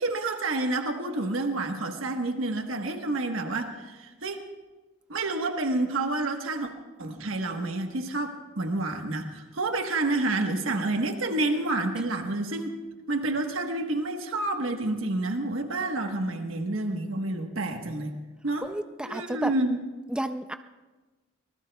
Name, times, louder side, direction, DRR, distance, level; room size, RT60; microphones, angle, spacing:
voice 1, 0.0-4.5 5.1-6.7 7.0-12.7 13.1-18.1 18.4-18.7 19.0-19.8, right 2 dB, 85° right, 4 dB, 1.2 m, -29 dB
voice 2, 18.6-19.5 20.1-20.5, right 1 dB, 5° right, 8 dB, 0.4 m, -31 dB
25.0 x 20.0 x 2.3 m, 1.2 s
head